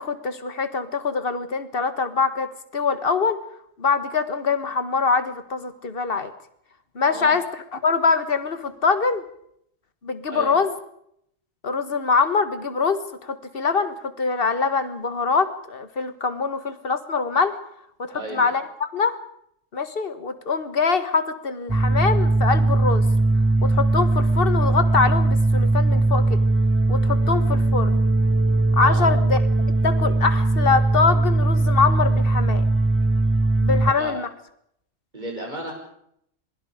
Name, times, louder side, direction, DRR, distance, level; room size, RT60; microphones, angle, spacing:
voice 1, 0.0-3.4 3.8-6.3 6.9-9.2 10.0-10.7 11.6-17.6 18.0-19.2 19.7-23.0 23.6-26.4 26.9-28.0 28.8-29.4 29.8-32.7 33.6-34.3, left 5 dB, 45° left, 11 dB, 1.7 m, -24 dB
voice 2, 10.3-10.6 18.1-18.4 28.8-29.1 33.8-34.1 35.1-35.7, right 1 dB, 35° right, 1 dB, 6.7 m, -33 dB
sound 1, 21.7-33.9, right 2 dB, 15° right, 0.6 m, -20 dB
27.0 x 21.5 x 5.0 m, 0.72 s
omnidirectional pair, 1.3 m